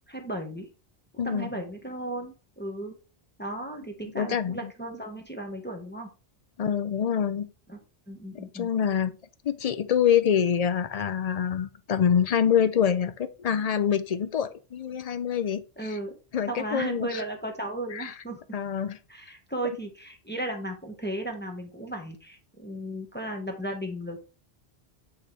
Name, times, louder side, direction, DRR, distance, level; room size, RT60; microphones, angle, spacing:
voice 1, 0.1-0.7 1.2-2.9 3.4-6.1 7.7-7.8 8.1-8.7 15.8-16.1 16.5-18.6 19.1-24.2, right 1 dB, 10° left, 1.2 m, -35 dB
voice 2, 1.2-1.6 4.2-4.7 6.6-7.5 8.3-9.2 9.4-15.6 16.3-17.3 17.9-18.1 18.5-19.0, left 8 dB, 50° left, 0.5 m, -26 dB
8.5 x 4.4 x 3.3 m
omnidirectional pair, 1.0 m